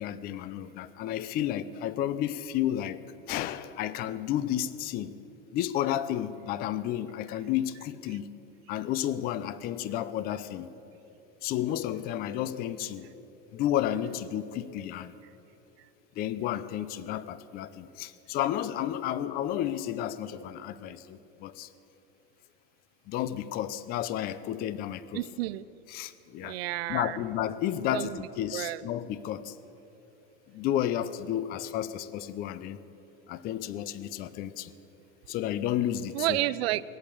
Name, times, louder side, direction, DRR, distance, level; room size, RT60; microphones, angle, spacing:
voice 1, 0.0-3.0 3.3-5.1 5.5-8.3 8.7-10.7 11.4-13.1 13.5-15.1 16.2-21.7 23.1-25.2 25.9-26.6 26.9-29.6 30.5-32.8 33.3-34.7 35.3-36.4, left 11 dB, 30° left, 15 dB, 0.5 m, -32 dB
voice 2, 25.1-25.6 26.4-27.2 27.8-28.2 28.5-28.8 36.1-36.8, right 17 dB, 85° right, 17 dB, 0.6 m, -30 dB
19.5 x 8.6 x 8.5 m, 2.9 s
supercardioid pair, 150°, 30 cm